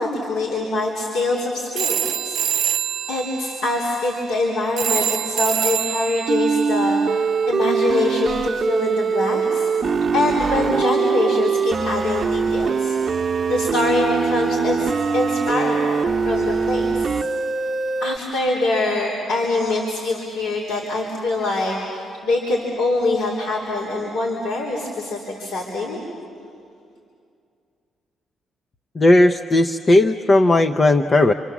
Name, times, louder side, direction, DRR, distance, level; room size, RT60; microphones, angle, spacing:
voice 1, 0.0-2.4 3.1-9.7 10.1-13.0 13.5-17.2 18.0-26.0, left 2 dB, 85° left, -5 dB, 3.9 m, -24 dB
sound 1, 1.8-7.9, right 10 dB, 70° right, 0.7 m, -27 dB
Sine Wave Shit, 6.3-18.2, right 5 dB, 40° right, 0.9 m, -22 dB
voice 2, 29.0-31.3, left 2 dB, 35° left, 7 dB, 0.7 m, -15 dB
28.0 x 27.0 x 7.3 m, 2.4 s
cardioid pair, 90°, 0 cm